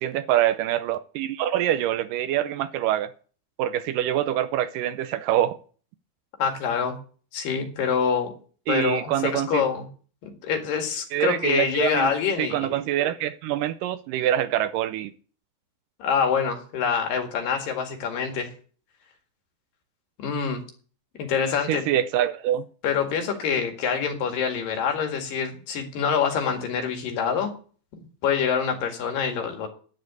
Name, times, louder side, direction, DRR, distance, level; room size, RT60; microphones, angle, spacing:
voice 1, 0.0-3.1 3.6-5.6 8.7-9.6 11.1-12.1 12.4-15.1 21.7-22.7, right 12 dB, 80° right, 12 dB, 2.2 m, -25 dB
voice 2, 6.4-7.0 7.3-8.3 8.7-9.9 10.2-12.7 16.0-18.5 20.2-20.6 21.2-21.8 22.8-27.5 27.9-29.7, left 6 dB, 75° left, 4 dB, 3.6 m, -26 dB
10.5 x 7.8 x 8.3 m, 0.42 s
omnidirectional pair, 4.0 m